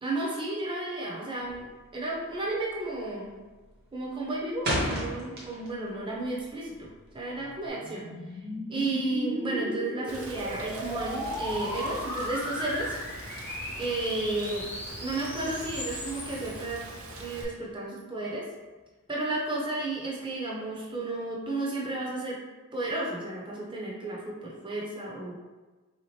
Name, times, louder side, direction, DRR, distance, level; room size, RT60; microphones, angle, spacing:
voice 1, 0.0-3.4 3.9-6.9 7.1-8.0 8.7-12.9 13.8-14.7 15.0-16.8 17.2-18.4 19.1-22.4 22.7-25.3, right 2 dB, 20° right, -4 dB, 0.7 m, -33 dB
sound 1, 1.4-1.8 2.1-2.5 2.8-3.2 3.6-5.9 6.2-7.7, equal, 45° right, 1.0 m, -32 dB
sound 2, 6.8-16.6, left 1 dB, 10° left, 0.4 m, -36 dB
Rain, 10.1-17.4, right 2 dB, 65° right, 0.6 m, -42 dB
3.6 x 2.8 x 3.2 m, 1.3 s
head